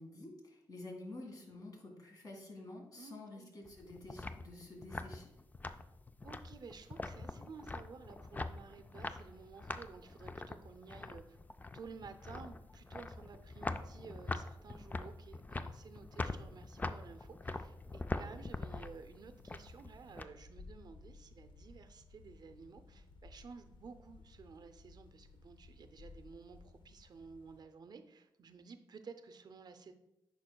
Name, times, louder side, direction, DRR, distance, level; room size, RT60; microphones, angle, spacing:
voice 1, 0.0-5.3, left 2 dB, 50° left, -1 dB, 2.0 m, -50 dB
voice 2, 3.0-3.6 6.2-11.4 11.7-29.9, right 5 dB, 55° right, 9 dB, 0.6 m, -53 dB
sound 1, 3.6-20.2, left 2 dB, 20° left, 0.3 m, -44 dB
sound 2, 17.8-27.6, left 3 dB, 75° left, 0.6 m, -57 dB
8.7 x 5.4 x 2.3 m, 0.91 s
cardioid pair, 70°, 8 cm